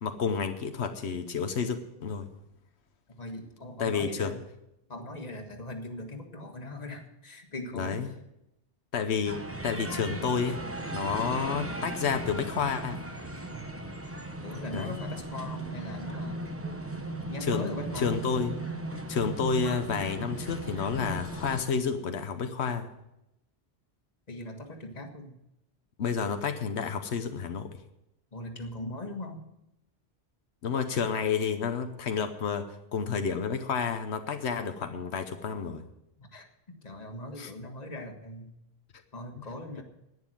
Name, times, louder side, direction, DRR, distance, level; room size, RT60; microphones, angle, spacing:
voice 1, 0.0-2.3 3.8-4.3 7.7-8.1 8.9-10.6 10.9-13.0 14.7-14.9 17.5-17.7 18.0-18.6 19.1-22.9 26.0-27.7 30.6-35.8 37.4-37.5, left 6 dB, 90° left, 7 dB, 1.2 m, -30 dB
voice 2, 3.2-4.4 4.9-8.1 13.5-13.6 14.4-16.4 16.6-16.8 17.2-18.1 24.3-25.4 28.3-29.4 36.2-38.5 39.1-39.8, left 1 dB, 40° left, 4 dB, 1.7 m, -40 dB
sound 1, 9.2-21.7, right 2 dB, 15° right, 1.0 m, -37 dB
11.0 x 9.6 x 7.6 m, 0.86 s
omnidirectional pair, 1.1 m